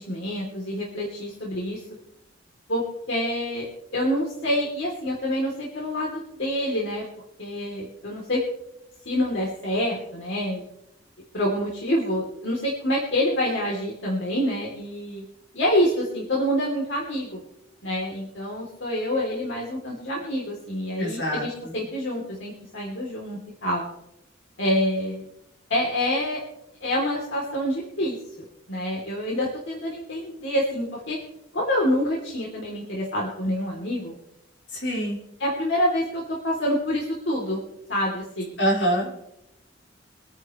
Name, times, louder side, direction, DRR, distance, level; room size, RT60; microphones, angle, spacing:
voice 1, 0.0-1.8 2.7-3.7 3.9-7.0 7.4-8.4 9.0-10.6 11.3-15.2 15.5-17.4 17.8-23.8 24.6-25.2 25.7-26.4 26.8-28.2 28.7-31.2 31.5-34.1 35.4-37.6 37.9-38.6, equal, 75° left, -3 dB, 3.2 m, -27 dB
voice 2, 21.0-21.7 34.7-35.2 38.6-39.1, equal, 90° left, -2 dB, 5.5 m, -25 dB
25.5 x 9.9 x 3.2 m, 0.85 s
head